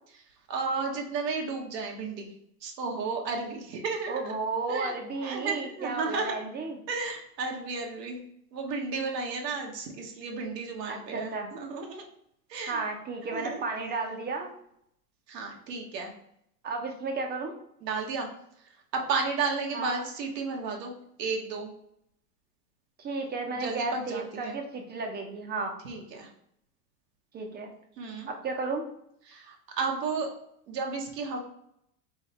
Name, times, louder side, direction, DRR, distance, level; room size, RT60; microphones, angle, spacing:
voice 1, 0.5-2.3 2.6-4.3 4.7-4.9 5.2-6.4 6.9-8.2 8.5-12.0 12.5-12.8 13.3-13.6 15.3-16.1 17.8-18.3 18.9-20.9 21.2-21.7 23.5-24.6 25.8-26.3 28.0-28.3 29.3-30.3 30.7-31.4, right 4 dB, 80° right, 1 dB, 1.4 m, -33 dB
voice 2, 4.1-6.8 10.9-11.5 12.7-14.5 16.6-17.5 19.7-20.0 23.0-25.7 27.3-27.7 28.3-28.8, right 3 dB, 20° right, 3 dB, 0.7 m, -33 dB
3.7 x 3.3 x 4.3 m, 0.73 s
supercardioid pair, 125°, 48 cm